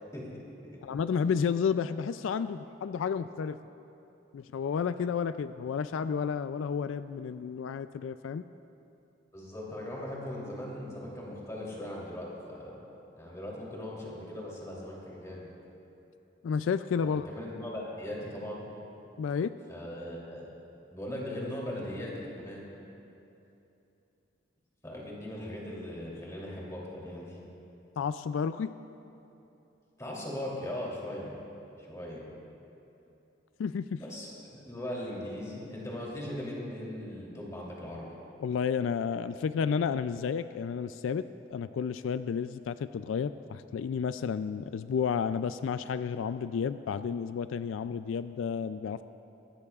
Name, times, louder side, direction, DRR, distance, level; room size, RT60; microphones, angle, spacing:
voice 1, 0.8-3.6 4.3-8.4 16.4-17.3 19.2-19.5 28.0-28.7 33.6-34.0 38.4-41.2 41.5-49.0, left 6 dB, 85° left, 12 dB, 0.3 m, -31 dB
voice 2, 9.3-12.8 13.1-15.5 17.2-18.7 19.7-20.4 20.9-22.6 24.8-27.4 30.0-31.3 31.8-32.2 34.0-38.1, left 1 dB, 15° left, -4 dB, 3.0 m, -39 dB
22.5 x 16.5 x 2.4 m, 2.9 s
head